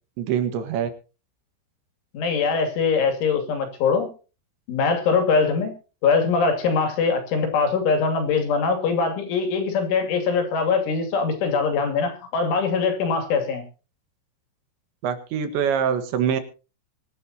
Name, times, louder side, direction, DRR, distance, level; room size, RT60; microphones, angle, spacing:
voice 1, 0.2-0.9 15.0-16.4, right 8 dB, 70° right, 9 dB, 3.7 m, -24 dB
voice 2, 2.1-4.1 4.7-5.7 6.0-13.6, left 5 dB, 75° left, 6 dB, 5.1 m, -22 dB
24.0 x 11.0 x 2.9 m, 0.34 s
omnidirectional pair, 5.6 m